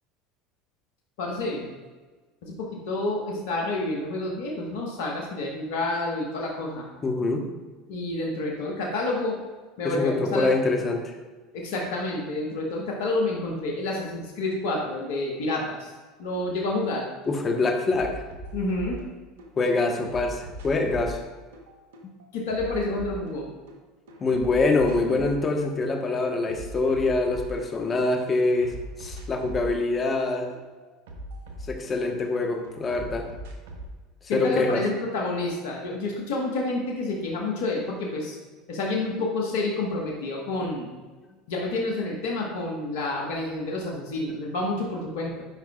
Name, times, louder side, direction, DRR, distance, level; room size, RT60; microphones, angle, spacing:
voice 1, 1.2-1.7 2.4-6.9 7.9-9.4 9.8-10.5 11.5-15.9 16.2-17.1 18.5-19.0 22.3-23.5 34.3-38.4 38.7-40.9 41.5-45.4, left 2 dB, 70° left, -1 dB, 1.2 m, -29 dB
voice 2, 7.0-7.5 9.8-11.1 17.3-18.2 19.6-21.2 24.2-30.5 31.7-33.3 34.3-34.8, left 3 dB, 30° left, 3 dB, 1.1 m, -25 dB
sound 1, 16.8-17.0 17.2-19.5 19.8-23.8 24.1-25.5 25.8-28.1 28.4-32.3 32.6-33.9, right 1 dB, 75° right, 1.0 m, -40 dB
9.5 x 5.1 x 2.4 m, 1.3 s
hypercardioid pair, 80°, 0 cm